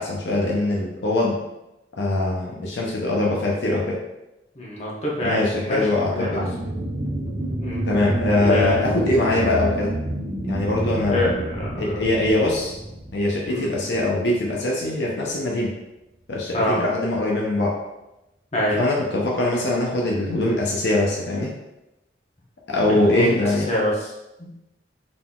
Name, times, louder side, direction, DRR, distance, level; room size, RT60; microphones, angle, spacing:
voice 1, 0.0-1.4 2.0-4.0 5.2-6.7 7.8-9.9 10.4-11.3 11.8-12.7 13.1-15.7 16.3-17.7 18.8-21.5 22.7-23.7, left 2 dB, 75° left, -2 dB, 0.6 m, -22 dB
voice 2, 4.5-6.4 7.6-7.9 8.4-8.9 11.1-11.8 13.5-13.7 16.5-16.8 18.5-18.8 22.9-24.1 24.4-24.5, left 1 dB, 40° left, -4 dB, 1.0 m, -26 dB
sound 1, 5.7-14.6 15.1-15.2, right 1 dB, 40° right, 0.7 m, -29 dB
3.9 x 3.8 x 2.3 m, 0.93 s
head